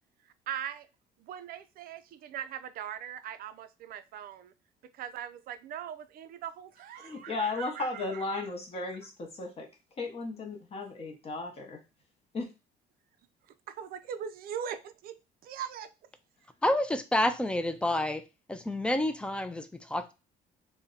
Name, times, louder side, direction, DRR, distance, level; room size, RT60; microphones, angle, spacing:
voice 1, 0.5-0.9 1.2-4.5 4.9-8.4 13.7-15.2 15.4-15.9, right 9 dB, 60° right, 0.4 m, -40 dB
voice 2, 7.0-9.7 10.0-11.8 12.3-12.5, left 3 dB, 35° left, 0.7 m, -35 dB
voice 3, 16.6-20.1, left 1 dB, 5° left, 0.3 m, -29 dB
2.7 x 2.1 x 3.8 m
cardioid pair, 110°, 17 cm